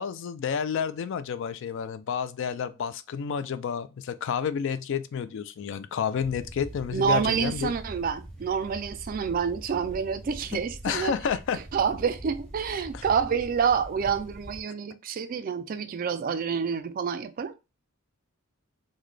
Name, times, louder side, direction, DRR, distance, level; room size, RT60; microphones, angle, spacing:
voice 1, 0.0-7.7 10.5-11.6 12.9-13.0, left 7 dB, 60° left, 0.3 m, -30 dB
sound 1, 6.2-14.6, right 1 dB, ahead, 0.8 m, -43 dB
voice 2, 6.9-11.1 11.7-17.5, right 6 dB, 40° right, 0.3 m, -28 dB
3.8 x 2.1 x 3.2 m
head